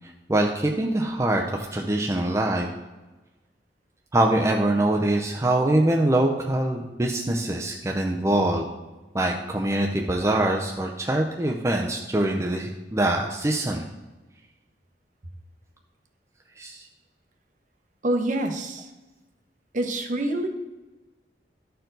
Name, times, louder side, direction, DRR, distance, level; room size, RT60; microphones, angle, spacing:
voice 1, 0.3-2.7 4.1-8.6 9.1-13.9 16.6-16.9, right 1 dB, 15° right, 1 dB, 0.5 m, -24 dB
voice 2, 18.0-18.9 19.7-20.5, right 1 dB, 45° right, 5 dB, 0.9 m, -26 dB
11.5 x 4.5 x 3.9 m, 1.1 s
head